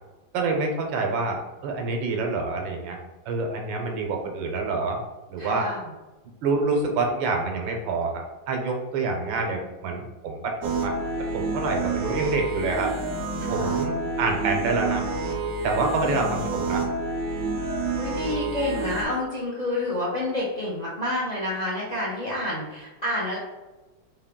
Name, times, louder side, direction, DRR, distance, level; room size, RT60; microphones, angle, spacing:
voice 1, 0.3-3.0 3.3-5.0 5.3-5.7 6.4-11.0 11.3-12.9 13.5-15.0 15.6-16.9, right 3 dB, 90° right, 2 dB, 1.5 m, -27 dB
voice 2, 5.4-5.9 13.4-13.8 16.0-16.2 18.0-23.4, left 1 dB, 55° left, -6 dB, 0.4 m, -29 dB
sound 1, 10.6-19.0, right 3 dB, 70° right, 0.9 m, -29 dB
4.2 x 2.2 x 3.6 m, 1.1 s
omnidirectional pair, 2.1 m